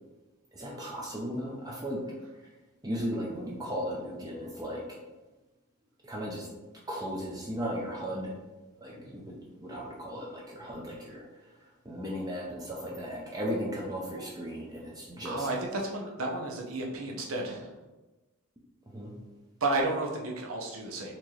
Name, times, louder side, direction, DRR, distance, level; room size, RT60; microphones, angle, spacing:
voice 1, 0.5-2.0 2.4-2.5 2.8-4.8 6.0-6.5 6.9-8.3 8.8-15.5 18.9-19.2, equal, 15° right, -3 dB, 0.5 m, -36 dB
voice 2, 15.2-17.7 19.6-21.1, right 2 dB, 80° right, 0 dB, 0.7 m, -32 dB
4.2 x 2.8 x 3.1 m, 1.1 s
head